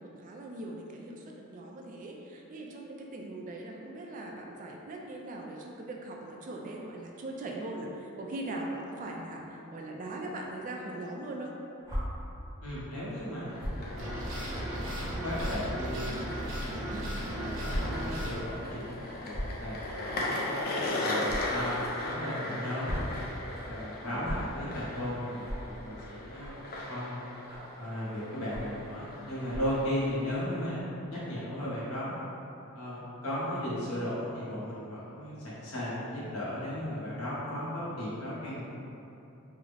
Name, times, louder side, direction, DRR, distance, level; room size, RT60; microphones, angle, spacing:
voice 1, 0.0-11.6 16.9-17.3 24.1-24.5, right 2 dB, 40° right, 0 dB, 0.3 m, -40 dB
sound 1, 11.8-12.0 13.6-13.8 14.5-14.6 15.3-15.5 16.5-16.7 17.7-17.8 18.1-18.3 19.2-19.6 21.2-21.4 22.6-23.1 24.2-24.3 25.4-25.6 26.4-26.6 27.5-27.7 28.5-28.8 29.4-29.7, equal, 15° right, 0.7 m, -36 dB
voice 2, 12.6-14.1 14.8-16.2 16.8-17.0 17.4-20.4 21.0-23.0 23.6-26.6 26.9-27.2 27.8-30.8 31.1-32.2 32.7-38.6, left 1 dB, 75° left, -9 dB, 1.0 m, -36 dB
sound 2, 13.5-30.4, left 1 dB, 45° left, 0.4 m, -38 dB
sound 3, 14.0-18.4, right 1 dB, 65° right, 0.7 m, -36 dB
3.5 x 2.0 x 3.2 m, 2.9 s
head